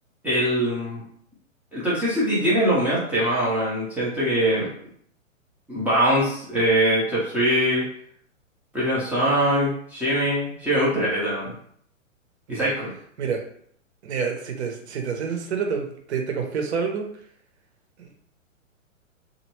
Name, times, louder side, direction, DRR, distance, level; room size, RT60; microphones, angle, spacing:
voice 1, 0.2-1.0 1.7-4.7 5.7-7.8 8.7-11.5 12.5-12.9, equal, 5° right, -9 dB, 0.6 m, -22 dB
voice 2, 14.0-17.0 18.0-18.2, right 6 dB, 55° right, 3 dB, 0.8 m, -28 dB
2.9 x 2.7 x 3.0 m, 0.64 s
figure-of-eight pair, 120°, 40 cm